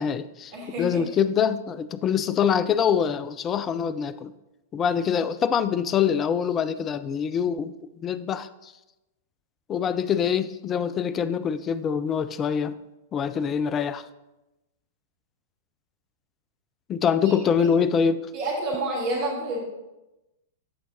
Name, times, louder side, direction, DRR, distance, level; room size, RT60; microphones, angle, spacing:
voice 1, 0.0-0.5 0.8-4.3 4.7-7.7 8.0-8.7 9.7-12.8 13.1-14.0 16.9-18.2, left 7 dB, 25° left, 15 dB, 0.4 m, -24 dB
voice 2, 0.5-1.0 17.2-17.7 18.3-19.6, right 1 dB, 40° right, -3 dB, 3.1 m, -29 dB
14.5 x 5.6 x 2.7 m, 0.99 s
figure-of-eight pair, 100°, 0 cm